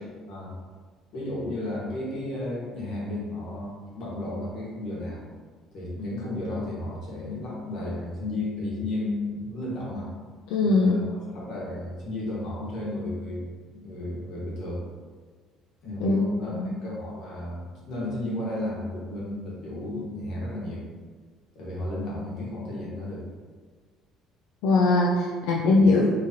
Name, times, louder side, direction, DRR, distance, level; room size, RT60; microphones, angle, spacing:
voice 1, 1.1-5.2 5.7-10.1 10.6-14.8 15.8-20.9 21.5-23.2 25.7-25.8, left 1 dB, 60° left, -5 dB, 1.3 m, -33 dB
voice 2, 10.5-11.0 16.0-16.2 16.5-16.7 24.6-26.1, left 3 dB, 80° left, -2 dB, 0.4 m, -21 dB
3.1 x 2.8 x 3.6 m, 1.5 s
cardioid pair, 140°, 0 cm